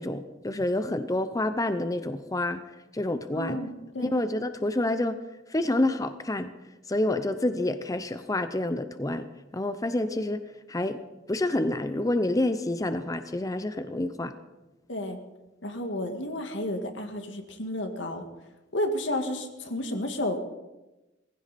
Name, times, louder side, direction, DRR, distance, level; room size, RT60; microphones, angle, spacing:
voice 1, 0.0-2.6 2.9-3.6 4.0-5.2 5.5-6.5 6.9-10.4 10.7-11.0 11.3-14.3, left 1 dB, 20° left, 10 dB, 0.6 m, -28 dB
voice 2, 3.3-4.2 14.9-15.2 15.6-18.2 18.7-20.4, left 1 dB, 90° left, 5 dB, 2.0 m, -31 dB
19.5 x 15.5 x 4.2 m, 1.1 s
head